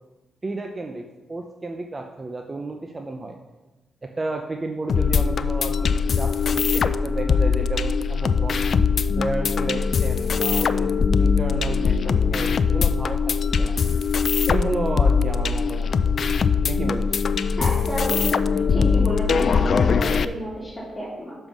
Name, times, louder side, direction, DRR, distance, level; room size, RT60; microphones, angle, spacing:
voice 1, 0.4-3.4 4.0-8.6 9.2-10.9 11.2-13.8 14.5-15.9 16.7-17.3, right 2 dB, 25° right, 3 dB, 0.7 m, -32 dB
sound 1, 4.9-20.3, left 5 dB, 55° left, 0.4 m, -21 dB
voice 2, 17.6-18.2 18.5-21.4, equal, 10° left, -8 dB, 2.7 m, -30 dB
7.0 x 5.4 x 6.1 m, 1.1 s
cardioid pair, 90°, 0 cm